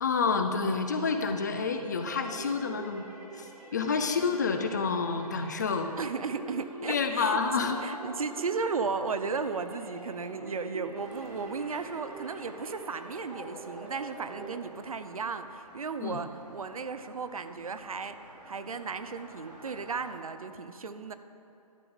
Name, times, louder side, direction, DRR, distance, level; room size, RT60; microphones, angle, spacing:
voice 1, 0.0-3.1 3.4-3.5 3.7-5.9 6.9-7.8 16.0-16.2, left 5 dB, 30° left, 6 dB, 0.4 m, -28 dB
sound 1, 2.0-14.5, right 2 dB, 5° right, 1.0 m, -45 dB
voice 2, 6.0-18.2 18.4-21.1, right 5 dB, 65° right, 10 dB, 0.5 m, -35 dB
sound 2, 10.9-20.2, right 1 dB, 80° right, 2.2 m, -51 dB
12.0 x 6.8 x 3.7 m, 3.0 s
figure-of-eight pair, 140°, 20 cm